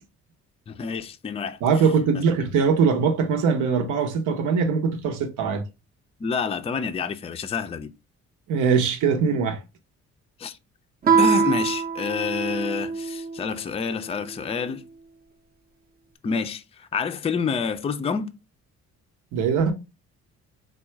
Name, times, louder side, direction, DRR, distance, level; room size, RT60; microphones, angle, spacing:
voice 1, 0.7-1.6 6.2-7.9 10.4-10.6 11.2-14.8 16.2-18.3, left 5 dB, 20° left, 0.4 m, -28 dB
voice 2, 1.6-5.6 8.5-9.6 19.3-19.7, right 5 dB, 85° right, 0.8 m, -21 dB
Guitar, 11.0-13.5, right 6 dB, 30° right, 0.6 m, -23 dB
3.6 x 2.3 x 4.4 m
cardioid pair, 90°, 30 cm